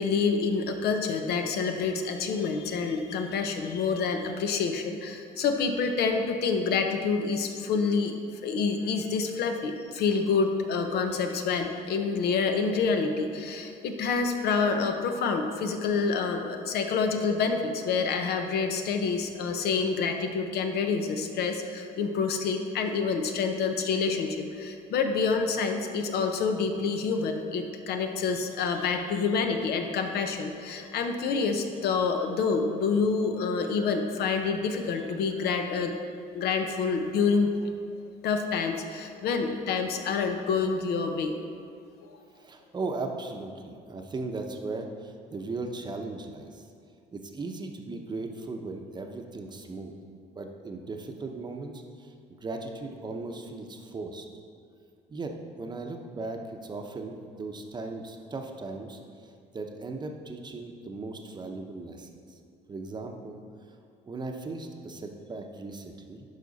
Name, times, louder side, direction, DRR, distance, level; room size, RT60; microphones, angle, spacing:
voice 1, 0.0-8.1 8.4-36.1 36.3-37.5 38.2-41.3, left 5 dB, 70° left, 5 dB, 0.8 m, -27 dB
voice 2, 42.4-46.6 47.1-49.9 50.4-54.3 55.1-62.4 62.7-63.4 64.1-66.2, right 3 dB, 25° right, 4 dB, 0.8 m, -37 dB
11.5 x 4.9 x 4.1 m, 2.3 s
cardioid pair, 110°, 17 cm